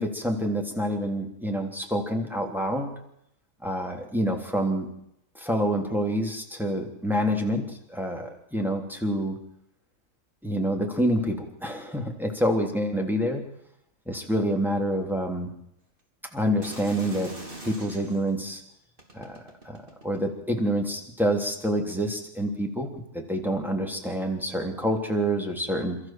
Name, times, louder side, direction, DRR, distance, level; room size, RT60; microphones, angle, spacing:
voice 1, 0.0-3.0 3.6-4.9 5.4-7.6 7.9-9.4 10.4-13.4 14.1-15.5 16.3-17.3 17.6-18.6 19.1-19.4 19.6-19.8 20.0-26.0, equal, ahead, 1 dB, 3.2 m, -27 dB
sound 1, 16.6-18.3 19.0-20.4 21.2-21.4, right 1 dB, 35° right, 3.6 m, -42 dB
28.0 x 14.0 x 7.7 m, 0.76 s
omnidirectional pair, 1.5 m